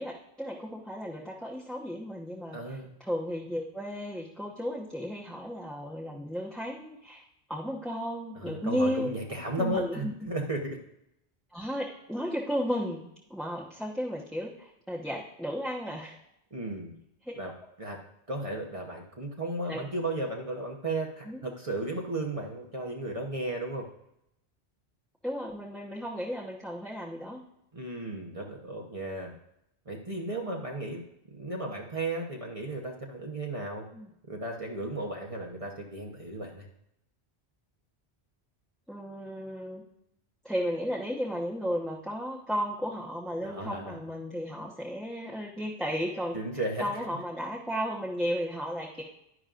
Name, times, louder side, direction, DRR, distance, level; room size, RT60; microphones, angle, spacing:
voice 1, 0.0-7.2 7.5-9.1 9.6-10.1 11.5-13.0 13.3-16.1 17.2-17.3 19.7-19.8 21.3-21.4 25.2-27.4 33.9-34.1 38.9-39.8 40.4-46.4 46.8-49.0, equal, ahead, -5 dB, 1.0 m, -34 dB
voice 2, 2.5-2.9 8.3-10.8 16.5-16.9 17.4-17.5 17.8-18.0 18.3-23.9 27.7-29.3 29.9-33.9 34.3-36.7 43.4-43.9 46.3-47.1, right 2 dB, 35° right, -1 dB, 1.1 m, -35 dB
11.0 x 10.5 x 2.5 m, 0.80 s
omnidirectional pair, 1.1 m